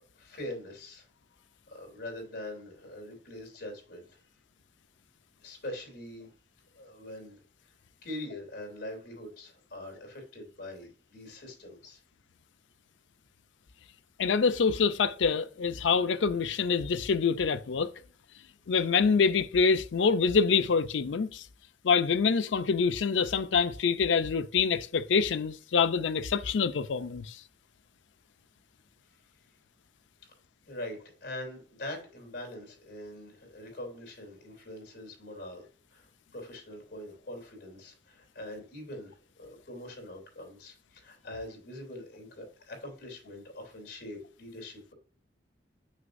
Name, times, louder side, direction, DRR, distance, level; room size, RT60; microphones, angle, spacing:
voice 1, 0.2-1.1 1.7-4.3 5.4-6.3 6.7-7.4 8.0-12.0 30.7-35.6 35.9-44.9, left 1 dB, 60° left, 3.0 m, -43 dB
voice 2, 14.2-17.9 18.7-21.5 21.8-27.4, left 5 dB, 85° left, 0.5 m, -26 dB
6.5 x 5.6 x 2.6 m
head